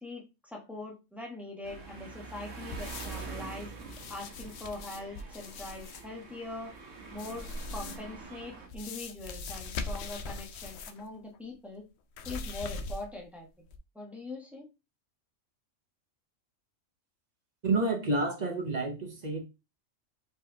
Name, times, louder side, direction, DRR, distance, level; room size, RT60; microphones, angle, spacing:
voice 1, 0.0-3.7 4.1-6.7 7.1-11.8 12.2-13.5 13.9-14.6, left 2 dB, ahead, 1.2 m, -42 dB
sound 1, 1.6-8.7, right 4 dB, 75° right, 1.4 m, -45 dB
sound 2, 2.7-3.4 3.8-6.0 7.1-8.1 8.7-11.1 11.3-11.4 12.1-13.2 13.7-13.8, left 3 dB, 65° left, 0.8 m, -40 dB
voice 2, 17.6-19.4, right 2 dB, 35° right, 0.9 m, -29 dB
4.6 x 4.1 x 2.8 m
omnidirectional pair, 1.3 m